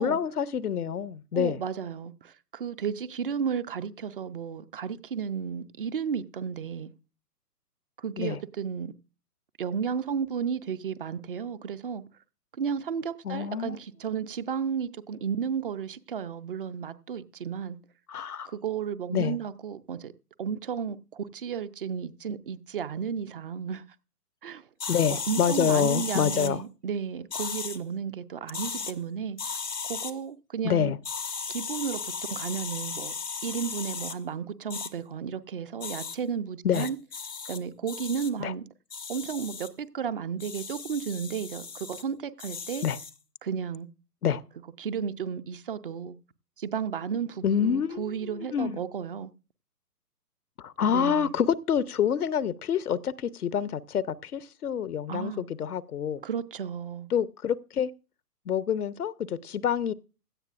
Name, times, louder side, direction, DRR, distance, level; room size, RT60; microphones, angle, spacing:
voice 1, 0.0-1.6 8.2-8.4 13.2-13.8 18.1-18.5 19.1-19.4 24.9-26.6 30.6-31.0 36.6-36.9 38.4-38.5 42.8-43.0 44.2-44.4 47.4-48.8 50.6-56.2 57.1-57.9 58.5-59.9, left 8 dB, 70° left, 0.8 m, -27 dB
voice 2, 1.3-6.9 8.0-8.9 9.6-12.0 12.6-17.8 18.5-20.1 20.4-23.8 24.4-24.6 25.1-29.4 29.8-30.9 31.5-33.1 33.4-37.0 37.5-38.6 39.1-42.9 43.4-43.9 44.8-46.2 46.6-49.3 50.9-51.3 55.1-55.4 56.2-57.1, right 7 dB, 35° right, 0.6 m, -33 dB
sound 1, 24.8-26.5 27.3-27.8 28.5-28.9 29.4-30.1 31.0-34.2 34.7-34.9 35.8-36.2 36.7-37.6 37.9-38.3 38.9-39.7 40.4-42.0 42.4-43.1, left 5 dB, 85° left, 1.6 m, -36 dB
16.5 x 13.0 x 2.4 m
figure-of-eight pair, 125°, 48 cm